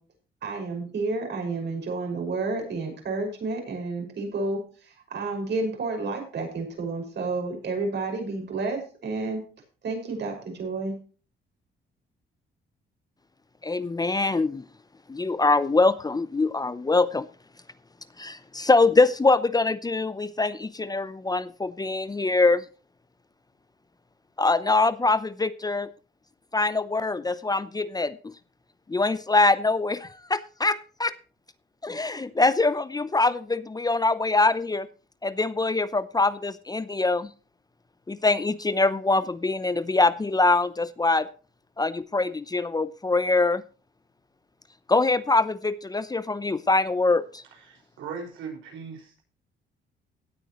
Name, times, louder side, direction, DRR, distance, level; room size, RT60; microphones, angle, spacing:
voice 1, 0.4-4.6 4.9-9.4 9.8-10.9, right 3 dB, 60° right, 2 dB, 5.8 m, -30 dB
voice 2, 13.6-14.6 15.1-17.3 18.2-22.6 24.4-25.9 26.5-28.3 28.9-31.1 31.8-34.9 35.2-37.3 38.1-41.3 41.8-43.6 44.9-47.4, left 3 dB, 20° left, 15 dB, 0.7 m, -23 dB
voice 3, 47.6-49.2, right 5 dB, 85° right, 1 dB, 5.4 m, -39 dB
17.5 x 8.9 x 3.1 m, 0.37 s
cardioid pair, 90°, 20 cm